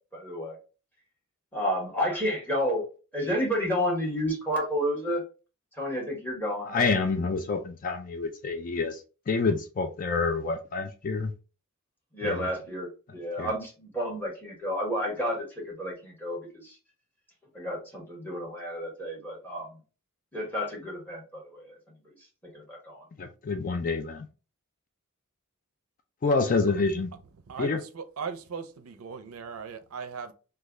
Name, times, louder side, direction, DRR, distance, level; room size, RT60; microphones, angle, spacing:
voice 1, 0.1-0.5 1.5-2.8 3.1-5.2 5.8-6.9 12.1-16.8 17.5-19.7 20.3-21.8 22.5-23.0, equal, 10° left, 1.4 m, -31 dB
voice 2, 6.7-11.3 12.2-12.5 13.4-13.5 23.2-24.3 26.2-27.1 27.6-27.8, left 4 dB, 40° left, 0.4 m, -28 dB
voice 3, 27.5-30.3, right 6 dB, 70° right, 0.5 m, -38 dB
3.2 x 2.3 x 3.5 m
head